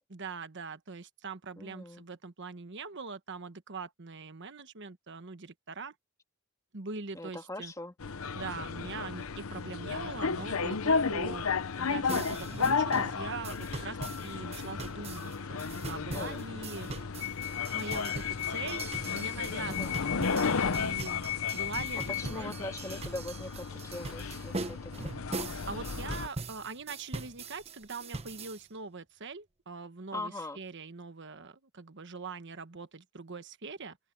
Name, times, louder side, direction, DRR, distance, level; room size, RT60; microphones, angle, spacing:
voice 1, 0.1-5.9 6.7-7.7 8.3-11.5 11.8-14.0 14.2-16.9 17.7-20.1 20.7-21.2 21.5-22.0 22.3-22.5 25.7-34.0, right 4 dB, 60° right, 1.2 m, -42 dB
voice 2, 1.6-2.1 7.1-7.9 16.1-16.4 19.7-19.9 22.2-25.2 30.1-30.6, left 2 dB, 15° left, 1.9 m, -41 dB
sound 1, 8.0-26.3, left 5 dB, 90° left, 0.8 m, -33 dB
sound 2, 12.1-28.6, right 3 dB, 30° right, 0.9 m, -42 dB
open air
head